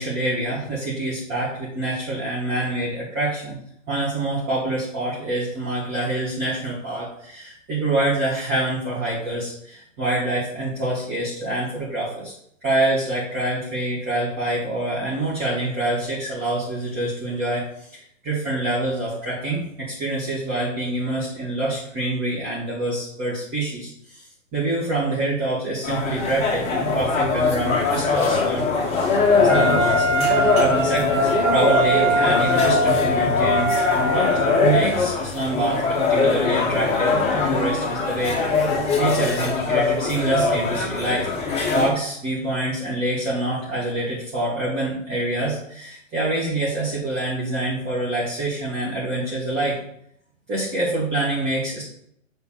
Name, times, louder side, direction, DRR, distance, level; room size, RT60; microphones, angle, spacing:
voice 1, 0.0-3.6 3.9-12.3 12.6-24.2 24.5-28.7 29.4-34.3 34.6-41.3 41.7-49.8 50.5-51.8, right 2 dB, 25° right, -9 dB, 2.2 m, -26 dB
sound 1, 25.8-41.9, left 4 dB, 15° left, 0.9 m, -22 dB
Wind instrument woodwind instrument, 29.5-34.7, right 1 dB, 80° right, 1.7 m, -22 dB
7.0 x 4.0 x 3.7 m, 0.71 s
hypercardioid pair, 130°, 39 cm